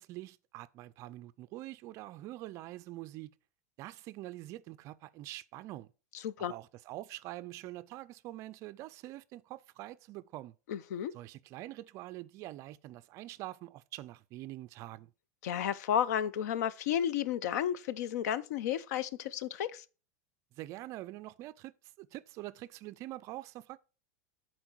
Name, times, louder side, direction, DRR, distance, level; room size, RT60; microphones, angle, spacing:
voice 1, 0.0-3.3 3.8-5.9 6.5-10.5 11.1-15.1 20.5-23.8, right 16 dB, 35° right, 0.4 m, -45 dB
voice 2, 10.7-11.1 15.4-19.8, left 9 dB, 70° left, 0.6 m, -32 dB
10.0 x 4.4 x 4.5 m
supercardioid pair, 160°, 9 cm